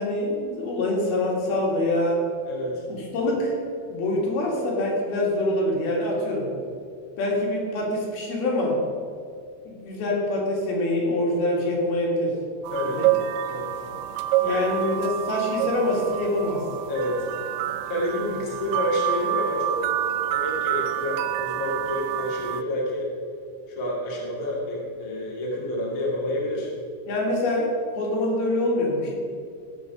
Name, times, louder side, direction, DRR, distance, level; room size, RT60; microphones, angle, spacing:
voice 1, 0.0-2.2 2.9-3.6 3.9-6.5 7.2-8.8 9.7-12.3 12.9-13.1 14.4-16.7 27.1-29.1, left 1 dB, 70° left, -2 dB, 3.7 m, -25 dB
voice 2, 2.5-2.8 12.7-13.0 13.5-13.7 14.4-14.6 16.9-17.3 17.9-19.8 20.3-23.1 23.7-26.7, left 1 dB, 30° left, -4 dB, 1.8 m, -29 dB
sound 1, 12.6-22.6, right 12 dB, 85° right, 2.4 m, -28 dB
16.5 x 5.6 x 5.2 m, 2.4 s
omnidirectional pair, 4.6 m